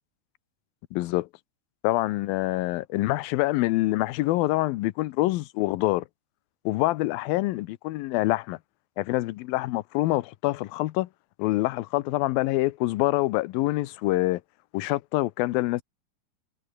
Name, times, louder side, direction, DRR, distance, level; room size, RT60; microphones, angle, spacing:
voice 1, 0.9-1.3 1.8-6.1 6.7-8.6 9.0-11.1 11.4-14.4 14.7-15.8, left 18 dB, 80° left, 2.6 m, -26 dB
omnidirectional pair, 4.2 m